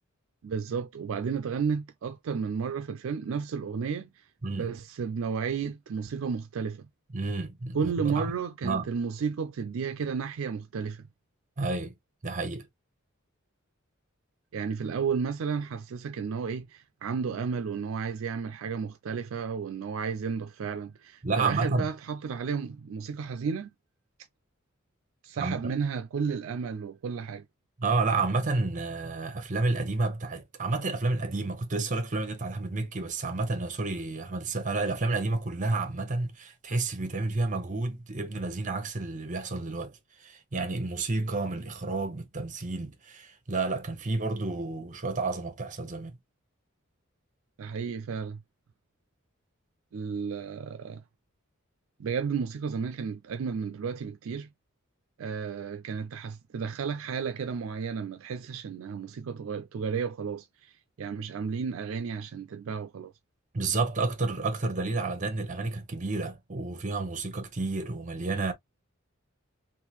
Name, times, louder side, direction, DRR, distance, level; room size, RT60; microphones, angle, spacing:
voice 1, 0.4-6.9 7.7-11.0 14.5-23.7 25.2-27.5 47.6-48.4 49.9-51.0 52.0-54.5 55.2-63.1, right 6 dB, 70° right, 0.4 m, -33 dB
voice 2, 7.1-8.3 8.6-8.8 11.6-11.9 12.2-12.7 21.2-21.9 25.4-25.6 27.8-46.1 63.5-68.5, right 3 dB, 40° right, 1.0 m, -30 dB
3.6 x 2.5 x 2.9 m
head